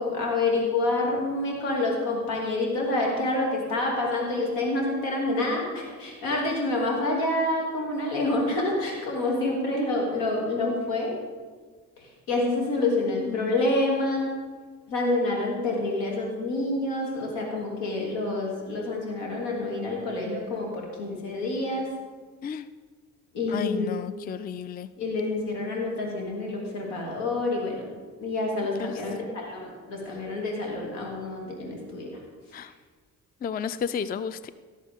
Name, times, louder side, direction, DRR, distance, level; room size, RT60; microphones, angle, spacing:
voice 1, 0.0-11.1 12.3-14.3 14.9-21.9 23.3-24.0 25.0-27.9 28.2-32.1, left 2 dB, 75° left, -1 dB, 2.8 m, -27 dB
voice 2, 12.8-13.5 22.4-22.7 23.5-24.9 28.8-29.0 32.5-32.7 33.4-34.5, left 7 dB, 20° left, 15 dB, 0.4 m, -33 dB
17.0 x 7.5 x 3.6 m, 1.5 s
hypercardioid pair, 50°, 44 cm